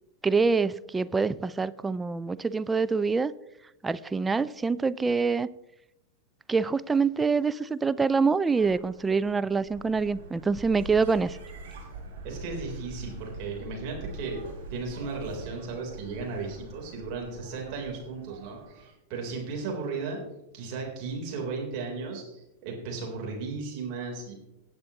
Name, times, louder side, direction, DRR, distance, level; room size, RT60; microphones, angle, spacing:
voice 1, 0.2-3.3 3.8-5.5 6.5-11.4, right 4 dB, 10° right, 15 dB, 0.4 m, -25 dB
sound 1, 8.5-18.9, right 2 dB, 60° right, 3.4 m, -44 dB
voice 2, 12.2-14.4 14.7-20.2 20.5-24.3, right 4 dB, 40° right, -1 dB, 3.6 m, -35 dB
17.5 x 8.1 x 3.0 m, 0.89 s
figure-of-eight pair, 90°, 0 cm